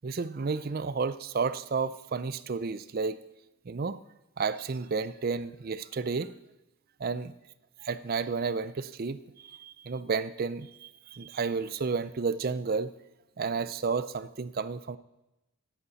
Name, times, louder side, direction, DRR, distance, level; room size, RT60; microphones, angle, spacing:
voice 1, 0.0-3.2 3.7-4.0 4.4-6.3 7.0-7.3 7.8-12.9 13.4-15.0, right 4 dB, 40° right, 14 dB, 0.4 m, -31 dB
16.5 x 8.3 x 4.1 m, 0.94 s
head